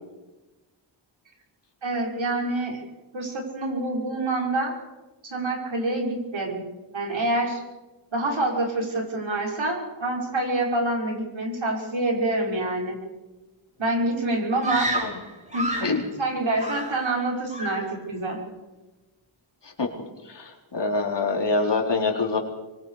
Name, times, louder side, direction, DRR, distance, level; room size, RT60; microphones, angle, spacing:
voice 1, 1.8-2.8 3.1-4.7 5.2-6.6 6.9-7.6 8.1-13.0 13.8-14.9 15.5-15.7 16.2-18.4, right 2 dB, 65° right, 0 dB, 6.1 m, -26 dB
Screaming, 14.6-16.0 16.6-17.2 17.5-17.9, right 1 dB, 15° right, 5.5 m, -30 dB
voice 2, 20.2-22.4, left 3 dB, 55° left, 1 dB, 4.1 m, -25 dB
25.5 x 24.0 x 5.0 m, 1.1 s
wide cardioid pair, 75°, 49 cm